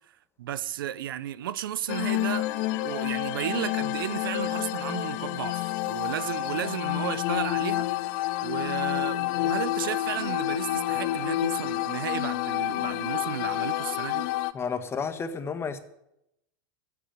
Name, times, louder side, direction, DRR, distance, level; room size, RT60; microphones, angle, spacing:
voice 1, 0.4-7.9 8.4-14.3, right 11 dB, 85° right, 0.7 m, -33 dB
sound 1, 1.9-14.5, left 16 dB, 60° left, 0.8 m, -29 dB
voice 2, 14.5-15.8, left 5 dB, 20° left, 1.5 m, -31 dB
13.5 x 8.4 x 9.0 m
hypercardioid pair, 110°, 11 cm